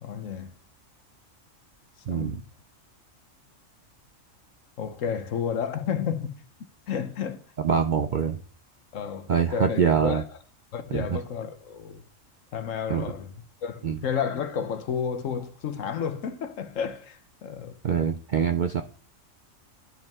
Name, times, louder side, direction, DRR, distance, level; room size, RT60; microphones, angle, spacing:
voice 1, 0.0-0.5 2.1-2.5 4.8-7.4 8.9-10.2 10.7-12.0 12.5-13.3 13.6-17.8, left 7 dB, 75° left, 1.2 m, -31 dB
voice 2, 2.1-2.4 7.6-8.4 9.3-10.2 10.9-11.2 12.9-13.1 13.8-14.0 17.8-18.8, right 7 dB, 60° right, 0.5 m, -24 dB
11.5 x 5.3 x 3.5 m
omnidirectional pair, 1.4 m